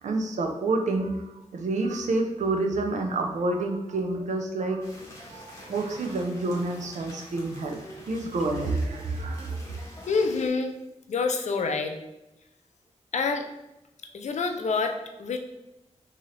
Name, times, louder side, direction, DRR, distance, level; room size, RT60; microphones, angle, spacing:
voice 1, 0.0-5.0 5.3-7.8 8.1-9.7, right 2 dB, 90° right, 3 dB, 0.5 m, -28 dB
sound 1, 4.8-10.5, left 1 dB, 25° left, 1.2 m, -47 dB
voice 2, 10.1-10.8 11.1-12.0 13.1-13.5 14.1-15.4, left 4 dB, 75° left, 5 dB, 0.4 m, -27 dB
3.7 x 2.8 x 3.2 m, 0.94 s
wide cardioid pair, 90°, 12 cm